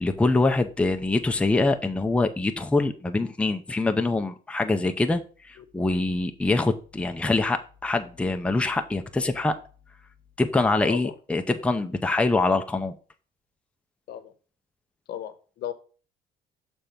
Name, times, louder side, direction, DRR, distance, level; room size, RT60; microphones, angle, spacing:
voice 1, 0.0-9.5 10.4-12.9, left 2 dB, 5° left, 6 dB, 0.6 m, -24 dB
voice 2, 15.1-15.7, left 10 dB, 70° left, 11 dB, 1.0 m, -35 dB
6.7 x 3.5 x 5.7 m, 0.38 s
cardioid pair, 110°, 17 cm